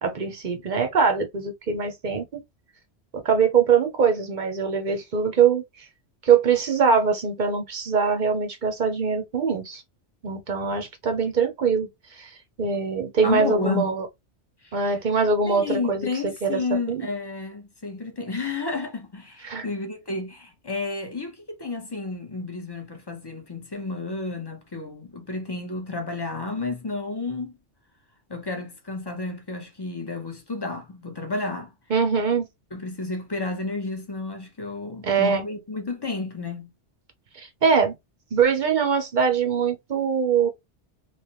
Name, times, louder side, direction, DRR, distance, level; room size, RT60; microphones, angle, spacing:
voice 1, 0.0-2.4 3.1-5.6 6.2-9.8 10.2-11.9 12.2-12.3 12.6-14.1 14.7-16.1 16.4-16.6 16.9-17.0 19.4-19.7 31.9-32.5 35.0-35.4 37.3-38.0 38.3-40.5, right 6 dB, 50° right, 0.7 m, -22 dB
voice 2, 13.2-13.9 14.6-14.8 15.5-27.5 28.3-31.7 32.7-36.7, left 3 dB, 25° left, 0.7 m, -31 dB
3.3 x 2.9 x 2.9 m
omnidirectional pair, 1.2 m